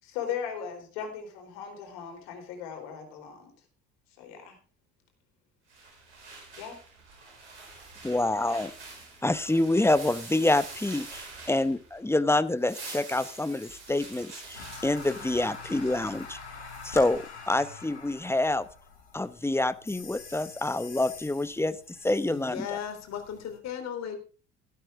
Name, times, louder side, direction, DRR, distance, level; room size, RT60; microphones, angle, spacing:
voice 1, 0.0-3.5 4.2-4.6 6.6-6.8 8.5-8.6, left 8 dB, 70° left, 4 dB, 4.3 m, -38 dB
sound 1, 5.7-12.1 12.4-17.1, right 3 dB, 85° right, 5.2 m, -46 dB
voice 2, 8.0-8.7 9.2-16.4 16.8-18.6 19.1-21.8 22.0-22.7, left 2 dB, 5° left, 15 dB, 0.9 m, -27 dB
sound 2, 14.5-23.6, left 4 dB, 90° left, 2.7 m, -45 dB
voice 3, 22.3-24.2, left 8 dB, 50° left, 5 dB, 3.6 m, -36 dB
13.5 x 12.5 x 3.6 m, 0.36 s
hypercardioid pair, 60°, 33 cm